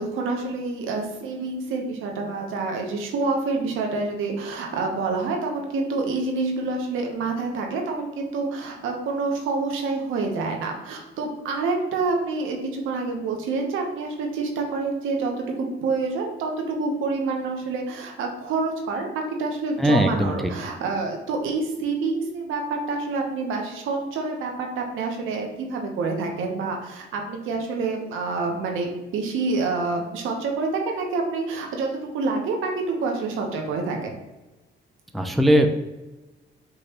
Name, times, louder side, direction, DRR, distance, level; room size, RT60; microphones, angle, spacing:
voice 1, 0.0-19.1 19.4-34.2, right 3 dB, 85° right, 2 dB, 0.9 m, -27 dB
voice 2, 19.8-20.5 35.1-35.7, equal, ahead, 4 dB, 0.4 m, -19 dB
5.1 x 3.0 x 2.9 m, 1.1 s
cardioid pair, 90°, 20 cm